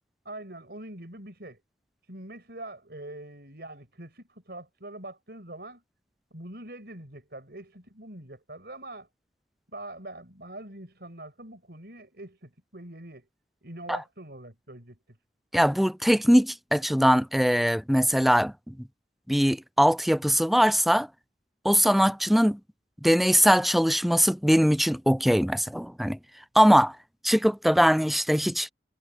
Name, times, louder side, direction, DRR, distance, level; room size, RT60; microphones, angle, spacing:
voice 1, 0.2-1.6 2.1-5.8 6.3-9.1 9.7-13.3 13.6-15.2, right 1 dB, 65° right, 5.9 m, -43 dB
voice 2, 15.5-18.7 19.3-21.1 21.6-22.6 23.0-26.2 26.6-27.0 27.2-28.7, equal, ahead, 0.3 m, -21 dB
head